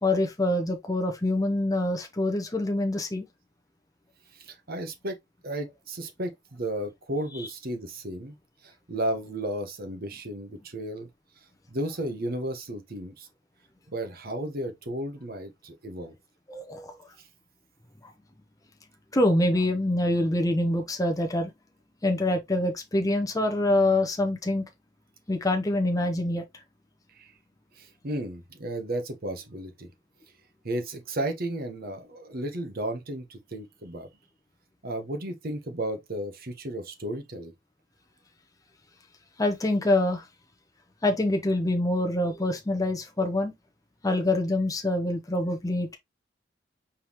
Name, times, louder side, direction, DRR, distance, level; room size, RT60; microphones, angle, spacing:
voice 1, 0.0-3.2 16.5-16.9 19.1-21.5 22.0-24.6 25.3-26.4 39.4-40.2 41.0-43.5 44.0-46.0, left 1 dB, 20° left, 0.7 m, -25 dB
voice 2, 4.3-5.2 5.4-8.4 8.6-11.1 11.7-13.3 13.9-16.1 17.2-17.3 27.1-27.3 27.8-29.9 30.6-34.1 34.8-37.5, right 1 dB, 50° right, 1.0 m, -34 dB
4.6 x 3.6 x 2.9 m
head